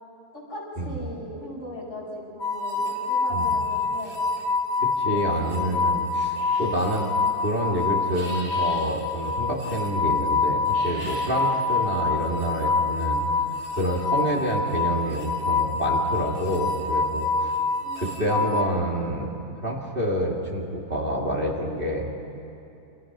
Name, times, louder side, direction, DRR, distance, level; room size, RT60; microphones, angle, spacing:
voice 1, 0.3-4.2 5.0-6.0 17.8-18.6, left 1 dB, 50° left, -4 dB, 7.1 m, -39 dB
sound 1, 2.4-18.6, left 4 dB, 65° left, 2.7 m, -26 dB
voice 2, 4.8-7.1 7.3-13.2 13.7-17.5 17.9-19.4 19.6-22.0, right 1 dB, 35° right, -2 dB, 2.8 m, -27 dB
sound 2, 6.4-6.8 8.0-8.8 10.6-11.3, left 1 dB, 90° left, 8.7 m, -41 dB
28.5 x 27.5 x 6.1 m, 2.9 s
omnidirectional pair, 1.6 m